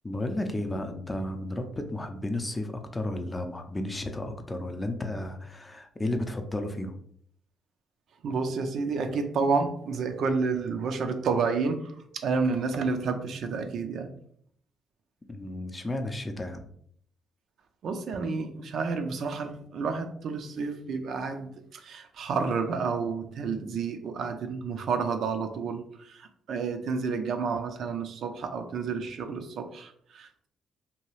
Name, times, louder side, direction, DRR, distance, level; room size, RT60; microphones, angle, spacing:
voice 1, 0.0-6.9 15.3-16.6, left 1 dB, 20° left, 6 dB, 0.4 m, -33 dB
voice 2, 8.2-14.1 17.8-30.5, right 4 dB, 65° right, 6 dB, 0.4 m, -30 dB
2.8 x 2.3 x 3.1 m, 0.63 s
cardioid pair, 90°, 0 cm